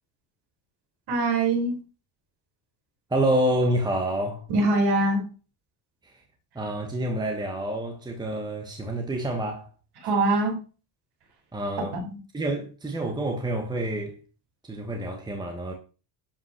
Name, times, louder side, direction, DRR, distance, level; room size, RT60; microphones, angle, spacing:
voice 1, 1.1-1.8 4.5-5.2 10.0-10.6 11.9-12.1, right 2 dB, 50° right, 5.0 m, -23 dB
voice 2, 3.1-4.4 6.5-9.7 11.5-12.0 12.3-14.2 14.7-15.7, right 1 dB, 10° right, 1.4 m, -27 dB
12.0 x 5.7 x 6.5 m
cardioid pair, 170°, 48 cm